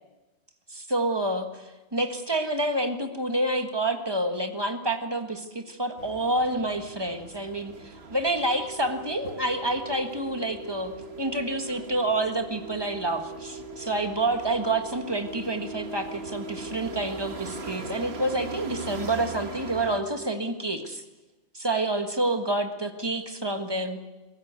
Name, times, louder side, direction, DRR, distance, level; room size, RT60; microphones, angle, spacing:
voice 1, 0.7-10.9 11.2-21.0 21.5-24.0, right 1 dB, 20° right, 6 dB, 1.6 m, -28 dB
sound 1, 6.0-20.0, right 4 dB, 55° right, 1.6 m, -42 dB
sound 2, 8.4-20.4, right 2 dB, 85° right, 5.1 m, -43 dB
23.0 x 14.0 x 9.4 m, 1.1 s
omnidirectional pair, 1.3 m